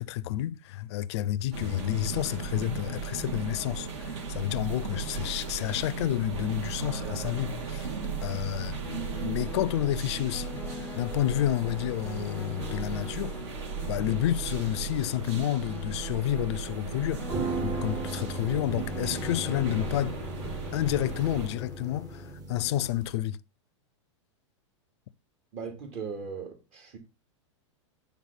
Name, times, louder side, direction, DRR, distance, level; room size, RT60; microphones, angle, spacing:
voice 1, 0.0-7.9 8.2-13.4 13.8-17.2 17.6-20.2 20.7-23.4, left 13 dB, 60° left, 0.6 m, -30 dB
sound 1, 1.5-21.5, right 5 dB, 60° right, 3.2 m, -36 dB
sound 2, 8.8-22.3, left 5 dB, 10° left, 0.6 m, -44 dB
sound 3, 17.2-23.1, right 2 dB, 25° right, 1.3 m, -37 dB
voice 2, 25.5-27.0, right 5 dB, 40° right, 2.5 m, -38 dB
9.7 x 3.6 x 5.8 m
hypercardioid pair, 125°, 16 cm